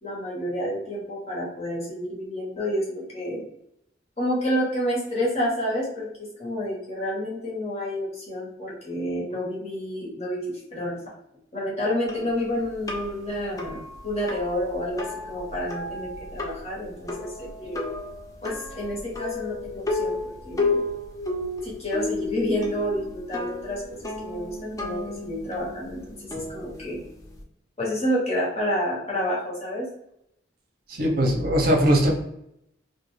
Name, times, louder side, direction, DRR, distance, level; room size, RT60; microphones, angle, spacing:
voice 1, 0.0-3.4 4.2-10.9 11.5-17.8 18.4-20.8 21.6-27.0 27.8-29.9, equal, 35° left, -5 dB, 1.0 m, -29 dB
sound 1, 12.1-27.4, left 3 dB, 15° left, 0.3 m, -33 dB
voice 2, 30.9-32.1, equal, 45° right, 1 dB, 0.6 m, -20 dB
2.4 x 2.2 x 3.1 m, 0.77 s
head